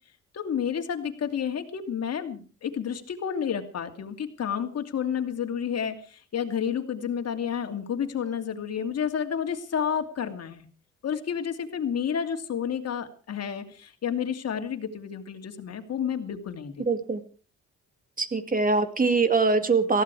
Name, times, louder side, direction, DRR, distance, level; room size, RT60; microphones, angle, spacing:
voice 1, 0.3-10.7 11.0-16.8, left 8 dB, 55° left, 6 dB, 2.8 m, -30 dB
voice 2, 16.9-17.2 18.2-20.0, right 4 dB, 30° right, 10 dB, 2.3 m, -23 dB
19.0 x 15.5 x 4.8 m, 0.39 s
cardioid pair, 90°, 30 cm